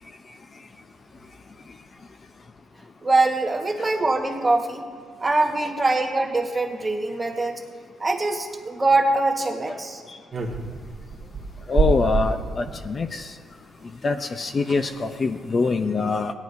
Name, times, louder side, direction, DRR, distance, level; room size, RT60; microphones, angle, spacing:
voice 1, 3.0-4.8 5.2-7.6 8.0-10.0, right 2 dB, 20° right, 3 dB, 1.3 m, -23 dB
sound 1, 10.3-12.8 14.1-14.2 14.3-14.4 14.6-15.0 15.4-15.7, right 4 dB, 35° right, 1.5 m, -27 dB
voice 2, 11.7-13.2 14.0-16.3, left 4 dB, 40° left, 8 dB, 0.6 m, -24 dB
16.5 x 11.0 x 2.6 m, 2.1 s
cardioid pair, 90°, 0 cm